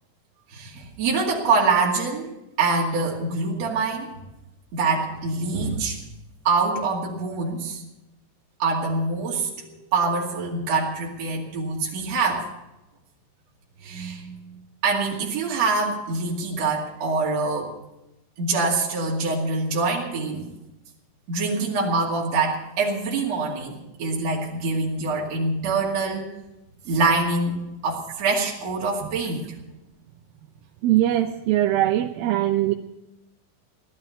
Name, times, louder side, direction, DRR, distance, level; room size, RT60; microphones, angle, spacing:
voice 1, 0.5-2.3 2.6-4.1 4.7-6.0 6.4-7.8 8.6-12.4 13.8-14.5 14.8-17.7 18.4-20.5 21.3-26.3 26.8-27.6 27.8-29.5, right 3 dB, 50° right, -3 dB, 3.3 m, -25 dB
voice 2, 30.8-32.7, right 13 dB, 80° right, 4 dB, 2.5 m, -21 dB
17.5 x 12.5 x 5.8 m, 0.93 s
omnidirectional pair, 4.2 m